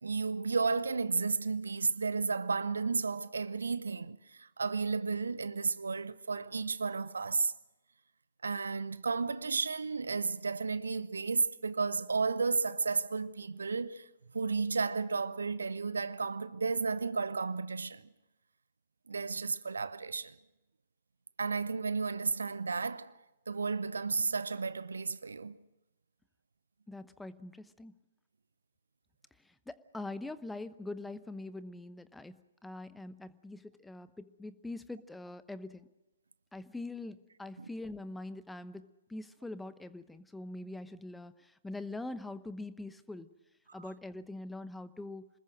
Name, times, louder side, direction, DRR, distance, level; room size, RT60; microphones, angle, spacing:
voice 1, 0.0-7.5 8.4-14.1 14.3-18.0 19.1-20.3 21.4-23.1 23.5-25.6 37.6-37.7, right 4 dB, 70° right, 0.9 m, -33 dB
voice 2, 26.9-27.9 29.7-35.9 36.5-43.3 43.7-45.3, left 2 dB, 5° left, 0.9 m, -43 dB
27.0 x 20.5 x 6.4 m
figure-of-eight pair, 120°, 0 cm